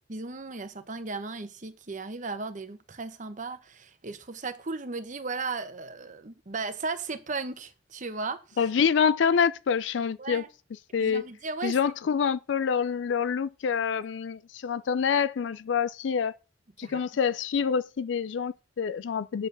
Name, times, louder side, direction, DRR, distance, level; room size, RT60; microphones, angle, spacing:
voice 1, 0.1-8.6 10.2-10.5 11.0-11.8 16.8-17.0, right 4 dB, 45° right, 1.1 m, -36 dB
voice 2, 8.6-10.4 10.9-11.2 11.6-16.4 16.8-19.5, left 6 dB, 80° left, 0.4 m, -26 dB
9.2 x 4.6 x 6.8 m
head